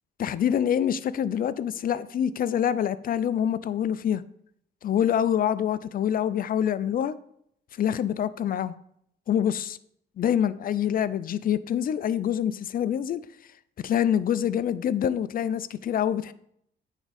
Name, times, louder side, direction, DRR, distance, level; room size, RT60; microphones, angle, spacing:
voice 1, 0.2-4.2 4.8-7.1 7.8-8.7 9.3-9.8 10.2-13.2 13.8-16.3, left 9 dB, 45° left, 15 dB, 0.4 m, -26 dB
9.1 x 3.6 x 4.1 m, 0.71 s
cardioid pair, 90°, 20 cm